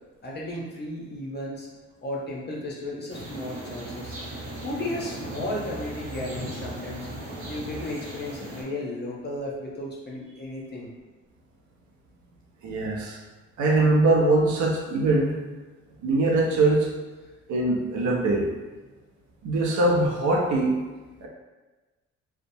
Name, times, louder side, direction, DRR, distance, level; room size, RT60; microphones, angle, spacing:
voice 1, 0.2-1.7 2.0-4.1 4.6-7.1 7.5-10.9, left 1 dB, 35° left, -3 dB, 0.7 m, -34 dB
sound 1, 3.1-8.6, right 1 dB, 50° right, 0.9 m, -37 dB
voice 2, 12.6-13.2 13.6-15.4 16.0-16.9 17.5-18.5 19.4-20.7 21.2-21.3, right 2 dB, 75° right, -1 dB, 0.6 m, -22 dB
2.8 x 2.1 x 2.7 m, 1.2 s
cardioid pair, 90°, 30 cm